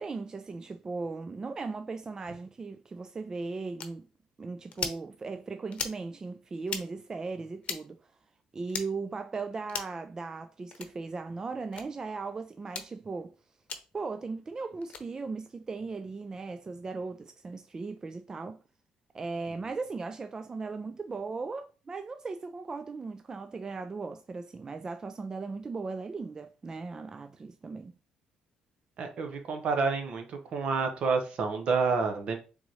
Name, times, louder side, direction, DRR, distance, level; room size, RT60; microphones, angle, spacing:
voice 1, 0.0-4.1 4.4-8.1 8.5-13.3 13.9-18.6 19.1-27.9, right 4 dB, 30° right, 0.3 m, -37 dB
sound 1, 3.8-3.9 4.7-5.0 5.7-6.0 6.6-6.8 7.6-7.8 8.7-8.9 9.7-10.0 10.7-10.9 11.7-11.8 12.7-12.9 13.7-13.8 14.8-15.0, left 6 dB, 55° left, 0.8 m, -36 dB
voice 2, 29.0-32.4, right 4 dB, 60° right, 1.0 m, -29 dB
3.9 x 3.6 x 3.1 m
cardioid pair, 85°, 2 cm